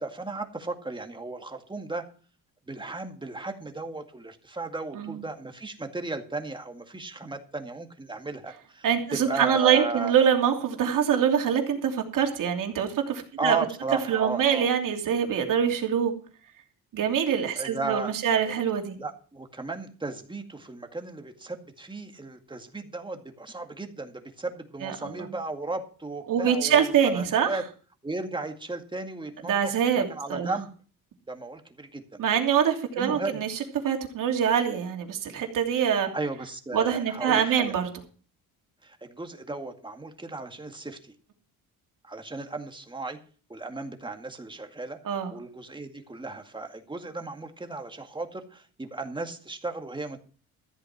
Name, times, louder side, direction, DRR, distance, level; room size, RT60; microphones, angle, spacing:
voice 1, 0.0-2.0 2.7-10.1 13.4-14.7 17.6-18.5 19.0-26.9 27.1-27.6 28.0-29.6 29.9-30.7 31.3-32.2 33.0-33.4 36.1-37.7 38.8-41.1 42.0-43.2 43.5-45.0 45.3-50.2, right 3 dB, 15° right, 5 dB, 2.0 m, -35 dB
voice 2, 8.8-13.6 14.1-16.1 16.9-19.0 24.8-25.3 26.3-27.5 29.5-30.5 32.2-33.5 33.8-36.1 36.7-37.9 45.0-45.3, right 8 dB, 65° right, 3 dB, 3.0 m, -24 dB
14.0 x 8.2 x 6.0 m, 0.40 s
cardioid pair, 95°, 34 cm